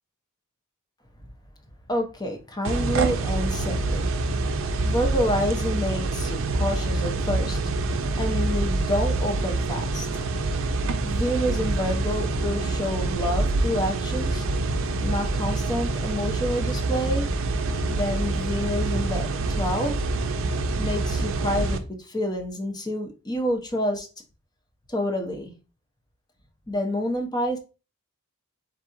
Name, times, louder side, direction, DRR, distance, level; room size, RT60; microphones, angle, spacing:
voice 1, 1.9-4.1 4.8-7.6 8.1-10.2 11.0-14.5 15.0-17.3 17.9-20.0 20.8-24.1 24.9-25.5 26.7-27.6, equal, 20° left, 0.8 m, -28 dB
sound 1, 2.7-21.8, right 2 dB, 65° right, 0.5 m, -26 dB
4.0 x 3.0 x 3.6 m
head